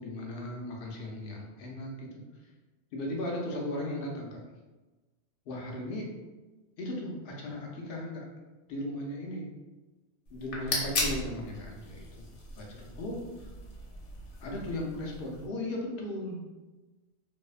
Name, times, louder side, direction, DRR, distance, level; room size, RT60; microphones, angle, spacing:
voice 1, 0.0-2.2 2.9-4.4 5.5-6.1 6.8-8.2 8.7-9.5 10.3-12.2 12.6-13.5 14.4-16.5, left 1 dB, 60° left, -1 dB, 0.7 m, -37 dB
sound 1, 10.3-15.5, left 2 dB, 85° left, 1.0 m, -37 dB
2.6 x 2.1 x 2.4 m, 1.2 s
omnidirectional pair, 1.2 m